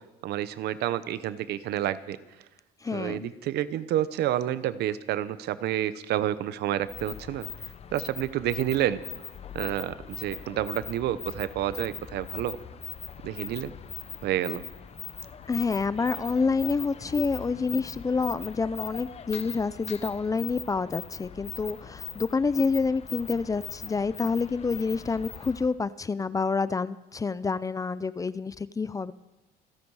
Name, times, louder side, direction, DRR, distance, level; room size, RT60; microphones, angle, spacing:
voice 1, 0.2-2.2 2.9-7.5 7.9-9.0 9.5-12.6 13.2-13.7 14.2-14.6, right 12 dB, 75° right, 14 dB, 0.9 m, -29 dB
voice 2, 2.8-3.3 15.5-29.1, left 4 dB, 20° left, 17 dB, 0.5 m, -28 dB
sound 1, 6.8-25.7, left 7 dB, 40° left, 0.9 m, -41 dB
27.0 x 10.5 x 4.8 m, 1.1 s
cardioid pair, 110°, 17 cm